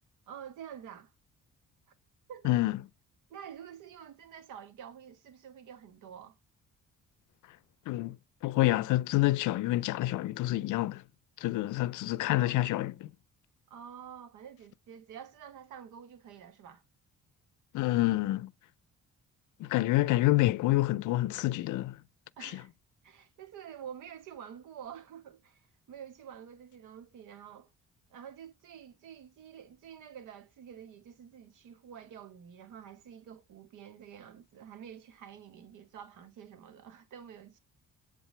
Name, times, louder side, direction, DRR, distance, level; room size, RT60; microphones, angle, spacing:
voice 1, 0.3-1.1 2.3-2.6 3.3-6.4 12.2-12.5 13.7-16.8 19.7-20.1 22.4-22.7 23.0-27.7 28.1-37.6, right 8 dB, 90° right, 1.4 m, -48 dB
voice 2, 2.4-2.8 7.9-8.2 8.4-11.0 11.4-13.1 17.7-18.5 19.6-22.0 22.4-22.6, left 17 dB, 80° left, 0.5 m, -28 dB
8.2 x 3.6 x 3.2 m
cardioid pair, 90°, 30 cm